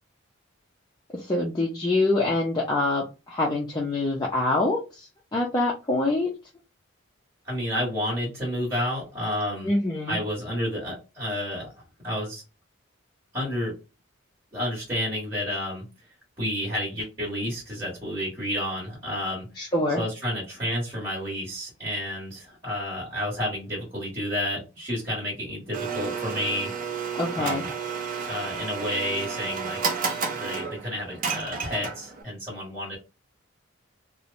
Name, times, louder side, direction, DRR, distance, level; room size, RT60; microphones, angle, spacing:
voice 1, 1.1-6.3 9.6-10.2 19.6-20.0 27.1-27.6, left 2 dB, 20° left, -3 dB, 0.4 m, -25 dB
voice 2, 7.5-9.7 10.1-11.7 12.0-12.4 13.3-13.7 14.5-15.8 16.4-19.5 20.0-26.7 27.4-27.7 28.3-30.0 30.3-33.0, equal, 20° right, -8 dB, 1.3 m, -30 dB
Domestic sounds home sounds, 25.7-32.2, right 5 dB, 40° right, 0.5 m, -31 dB
3.0 x 2.0 x 2.5 m, 0.28 s
head